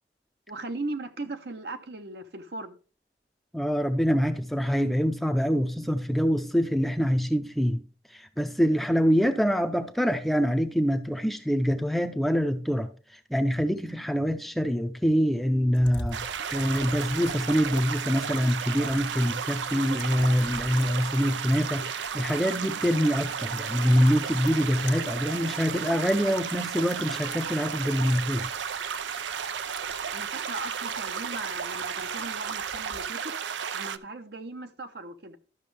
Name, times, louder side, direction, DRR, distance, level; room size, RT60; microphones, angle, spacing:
voice 1, 0.5-2.8 30.1-33.3 33.7-35.4, right 2 dB, 65° right, 0.9 m, -38 dB
voice 2, 3.5-7.8 8.1-28.5, equal, ahead, 0.5 m, -25 dB
sound 1, 15.7-33.0, left 2 dB, 75° left, 1.2 m, -48 dB
sound 2, 16.1-34.0, right 7 dB, 90° right, 0.5 m, -33 dB
12.5 x 6.2 x 3.3 m
head